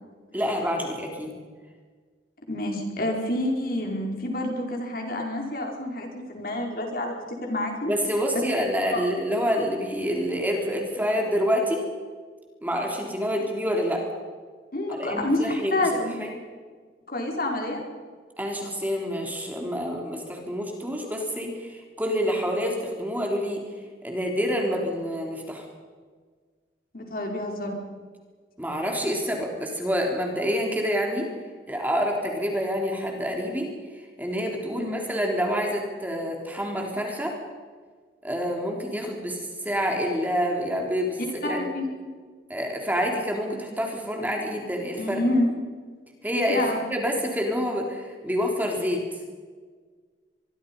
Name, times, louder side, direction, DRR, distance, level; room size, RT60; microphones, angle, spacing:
voice 1, 0.3-1.4 7.8-11.9 12.6-14.1 14.9-15.8 16.2-16.4 18.4-23.6 24.0-25.7 28.6-31.3 31.7-37.4 38.2-41.6 42.5-45.2 46.2-49.0, equal, 10° right, 1 dB, 3.6 m, -27 dB
voice 2, 2.5-7.9 8.9-9.0 14.7-15.4 15.7-16.1 17.1-17.8 26.9-27.8 34.7-34.9 41.4-41.9 45.0-45.5 46.5-46.8, left 1 dB, 55° left, 1 dB, 5.0 m, -28 dB
25.0 x 23.0 x 5.5 m, 1.5 s
head